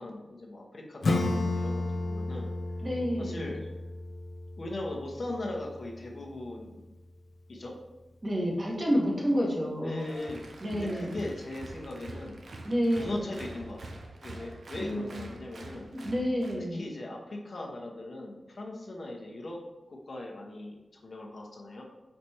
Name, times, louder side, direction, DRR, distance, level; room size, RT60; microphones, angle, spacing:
voice 1, 0.0-2.5 3.2-3.6 4.6-6.8 7.5-7.8 9.8-10.4 10.7-12.4 12.9-15.9 16.7-19.6 19.9-21.8, left 2 dB, 50° left, -1 dB, 1.1 m, -39 dB
Acoustic guitar / Strum, 1.0-6.3, left 2 dB, 70° left, 0.5 m, -33 dB
voice 2, 2.8-3.5 8.2-10.1 10.6-11.2 12.6-13.3 14.8-15.2 15.9-16.8, equal, 35° right, -4 dB, 1.6 m, -29 dB
Applause, 10.0-16.6, right 2 dB, 75° right, 0.7 m, -45 dB
5.0 x 4.4 x 4.5 m, 1.0 s
wide cardioid pair, 95°, 0 cm